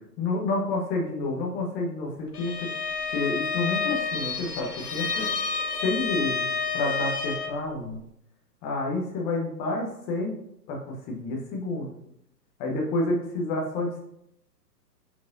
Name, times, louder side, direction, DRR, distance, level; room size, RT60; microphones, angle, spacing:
voice 1, 0.2-2.7 3.1-5.3 5.8-6.5 6.7-8.0 8.6-10.3 10.7-11.9 12.6-14.0, left 2 dB, 20° left, 0 dB, 1.1 m, -29 dB
Bowed string instrument, 2.3-7.6, left 5 dB, 65° left, 1.1 m, -29 dB
9.1 x 4.8 x 2.7 m, 0.76 s
figure-of-eight pair, 125°, 49 cm